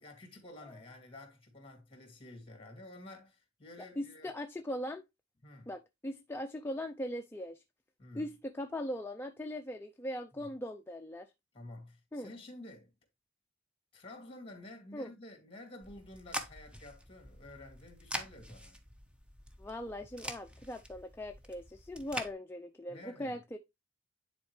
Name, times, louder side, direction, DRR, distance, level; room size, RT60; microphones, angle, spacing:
voice 1, 0.0-4.3 5.4-5.7 8.0-8.3 10.4-10.5 11.5-12.9 13.9-18.8 22.9-23.4, left 1 dB, 30° left, 2.5 m, -51 dB
voice 2, 4.0-5.0 5.7-7.6 8.1-11.3 12.1-12.3 14.9-15.1 19.6-23.6, left 1 dB, 10° left, 0.5 m, -40 dB
sound 1, 15.8-22.3, equal, 5° right, 0.9 m, -45 dB
10.0 x 4.3 x 3.2 m
head